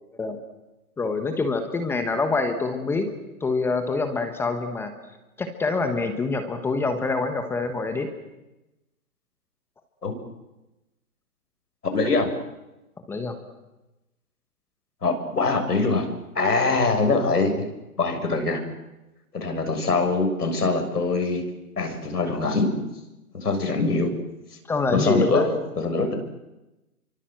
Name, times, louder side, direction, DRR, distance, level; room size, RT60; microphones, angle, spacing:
voice 1, 1.0-3.1 3.4-4.9 5.4-8.1 13.1-13.4 24.7-25.6, left 3 dB, 5° left, 7 dB, 1.2 m, -25 dB
voice 2, 11.9-12.3 15.0-16.1 16.4-17.7 18.0-18.6 19.3-21.4 21.8-22.8 23.3-24.1 24.9-26.1, left 3 dB, 90° left, 6 dB, 7.3 m, -23 dB
29.0 x 24.5 x 7.8 m, 0.99 s
hypercardioid pair, 150°, 45 cm